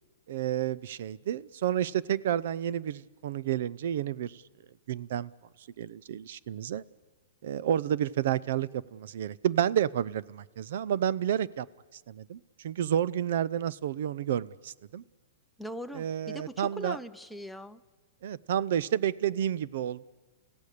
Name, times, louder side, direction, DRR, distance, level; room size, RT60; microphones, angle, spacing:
voice 1, 0.3-4.4 4.9-5.3 5.6-6.8 7.4-11.7 12.1-15.0 15.9-17.0 18.2-20.0, right 10 dB, 60° right, 20 dB, 0.6 m, -30 dB
voice 2, 15.6-17.8, equal, ahead, 7 dB, 0.6 m, -40 dB
29.0 x 16.0 x 6.7 m, 1.3 s
hypercardioid pair, 145°, 0 cm